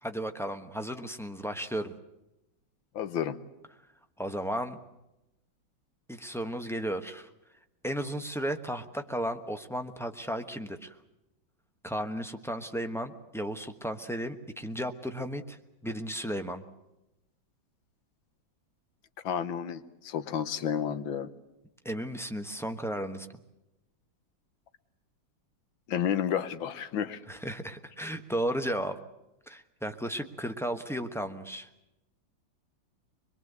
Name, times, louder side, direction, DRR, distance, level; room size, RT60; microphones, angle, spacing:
voice 1, 0.0-1.9 4.2-4.8 6.1-7.3 7.8-10.9 11.8-15.6 15.8-16.6 21.8-23.3 27.3-29.0 29.5-31.7, equal, ahead, 6 dB, 0.8 m, -34 dB
voice 2, 2.9-3.4 19.2-21.3 25.9-27.2, left 8 dB, 80° left, 12 dB, 1.8 m, -31 dB
23.5 x 22.0 x 8.1 m, 0.92 s
omnidirectional pair, 2.1 m